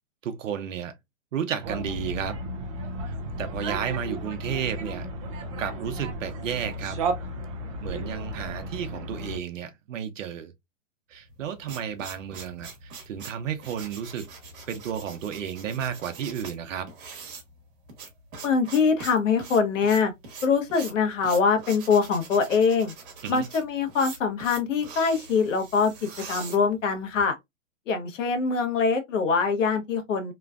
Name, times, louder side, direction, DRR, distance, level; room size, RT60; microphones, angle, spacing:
voice 1, 0.2-0.9 1.3-2.4 3.0-5.1 5.6-7.0 7.8-10.5 11.1-14.3 14.7-16.9 23.2-23.5, right 8 dB, 75° right, 0.8 m, -32 dB
sound 1, 1.6-9.4, right 1 dB, 25° right, 0.4 m, -33 dB
sound 2, 11.3-27.2, right 4 dB, 45° right, 1.2 m, -43 dB
voice 2, 18.4-20.1 20.4-22.9 23.3-25.9 26.3-27.4 27.9-30.3, left 5 dB, 70° left, 1.0 m, -23 dB
3.1 x 2.2 x 2.4 m
hypercardioid pair, 145°, 39 cm